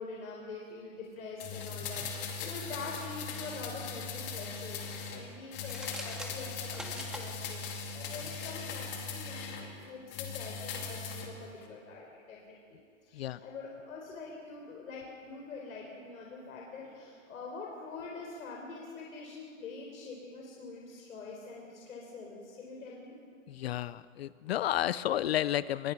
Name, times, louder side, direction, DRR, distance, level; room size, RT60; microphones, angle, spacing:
voice 1, 0.0-23.1, left 4 dB, 85° left, -1 dB, 4.5 m, -45 dB
sound 1, 1.4-5.2 5.5-9.7 10.1-11.3 11.6-11.7, left 5 dB, 25° left, 2.5 m, -39 dB
sound 2, 5.6-7.3, right 1 dB, ahead, 1.7 m, -44 dB
voice 2, 23.5-25.9, left 12 dB, 50° left, 17 dB, 0.5 m, -31 dB
25.5 x 21.5 x 6.0 m, 2.3 s
hypercardioid pair, 160°, 40 cm